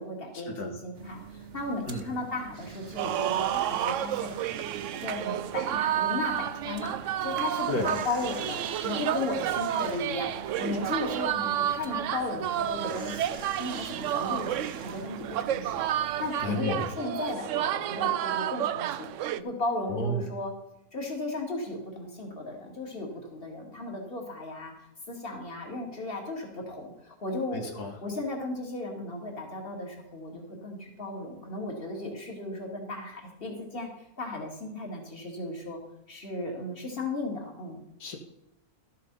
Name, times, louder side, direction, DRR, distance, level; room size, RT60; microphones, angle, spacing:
voice 1, 0.0-4.5 5.0-15.9 16.2-20.5 20.9-24.7 25.1-27.6 28.0-35.8 36.1-37.8, left 2 dB, 35° left, 1 dB, 2.6 m, -35 dB
sound 1, 0.9-16.6, right 6 dB, 50° right, 1.3 m, -45 dB
sound 2, 3.0-19.4, right 11 dB, 70° right, 0.8 m, -31 dB
voice 2, 16.4-16.8 19.9-20.3 27.5-27.9 38.0-38.2, left 1 dB, 85° left, 2 dB, 2.0 m, -31 dB
13.0 x 7.6 x 5.5 m, 0.85 s
omnidirectional pair, 1.6 m